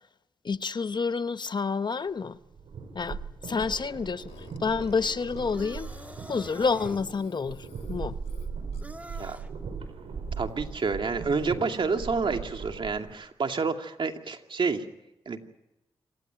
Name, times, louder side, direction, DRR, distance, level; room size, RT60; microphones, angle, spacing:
voice 1, 0.4-2.4 2.9-5.9 6.3-8.2, left 5 dB, 50° left, 0.9 m, -29 dB
sound 1, 2.3-13.1, right 5 dB, 80° right, 5.2 m, -39 dB
Burping eructation, 4.3-9.0, left 7 dB, 90° left, 1.8 m, -51 dB
sound 2, 5.5-7.0 8.8-9.5, right 1 dB, 15° right, 2.7 m, -45 dB
voice 2, 10.4-14.8 15.3-15.4, right 4 dB, 60° right, 2.5 m, -29 dB
27.0 x 16.5 x 9.1 m
cardioid pair, 50°, 10 cm